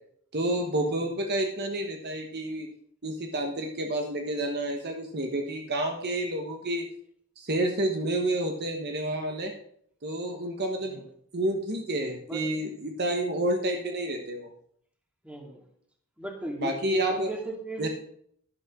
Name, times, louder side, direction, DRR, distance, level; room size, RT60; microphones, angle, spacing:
voice 1, 0.3-2.7 3.0-6.8 7.4-9.5 10.0-11.0 11.3-14.5 16.6-17.3 17.8-17.9, right 1 dB, 50° right, 3 dB, 1.2 m, -29 dB
voice 2, 15.2-15.6 16.2-17.9, right 1 dB, 5° right, 1 dB, 2.3 m, -36 dB
12.0 x 11.0 x 3.7 m, 0.65 s
head